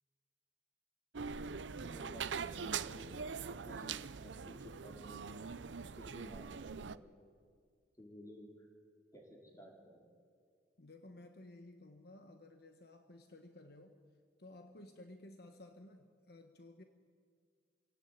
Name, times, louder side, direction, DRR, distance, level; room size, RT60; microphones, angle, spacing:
sound 1, 1.1-7.0, right 6 dB, 90° right, 0.6 m, -43 dB
voice 1, 1.8-5.4 6.0-7.0 8.0-8.7 9.1-10.1, equal, 20° left, 0 dB, 4.6 m, -54 dB
voice 2, 10.8-14.0 14.4-16.8, left 2 dB, 60° left, 6 dB, 1.3 m, -55 dB
26.0 x 17.0 x 9.4 m, 2.1 s
head